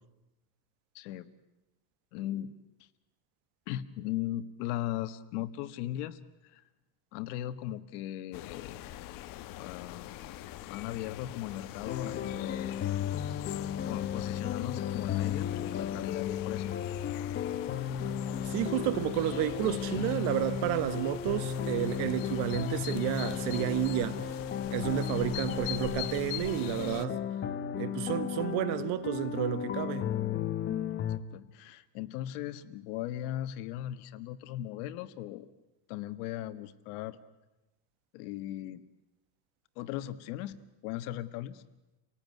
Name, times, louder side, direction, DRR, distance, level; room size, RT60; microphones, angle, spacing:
voice 1, 0.9-1.3 2.1-2.5 3.7-6.6 7.1-8.8 9.5-10.1 10.7-12.8 13.9-16.7 31.1-35.5 35.9-37.2 38.1-38.8 39.7-41.6, left 13 dB, 75° left, 1.7 m, -38 dB
sound 1, 8.3-27.1, left 13 dB, 45° left, 1.1 m, -43 dB
sound 2, 11.9-31.2, left 9 dB, 25° left, 1.2 m, -34 dB
voice 2, 18.4-24.3 24.7-27.2 27.8-30.1, right 13 dB, 60° right, 1.7 m, -31 dB
30.0 x 18.0 x 9.6 m
cardioid pair, 160°, 46 cm